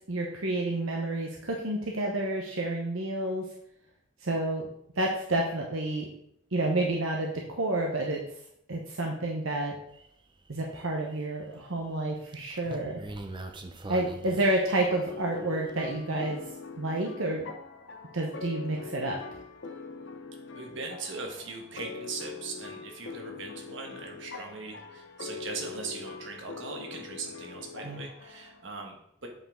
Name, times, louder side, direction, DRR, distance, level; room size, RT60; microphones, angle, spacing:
voice 1, 0.1-3.5 4.2-4.7 5.0-6.1 6.5-8.2 8.7-9.8 10.5-13.0 13.9-16.4 16.8-17.5 18.1-19.2 27.8-28.0, right 2 dB, 80° right, 0 dB, 1.0 m, -29 dB
sound 1, 9.9-10.1 10.5-11.2 12.0-15.2 15.7-15.8, right 2 dB, 25° right, 0.6 m, -42 dB
sound 2, 14.9-28.6, left 4 dB, 65° left, 0.8 m, -43 dB
voice 2, 20.6-29.3, right 4 dB, 65° right, 2 dB, 1.4 m, -40 dB
8.5 x 5.1 x 3.7 m, 0.74 s
head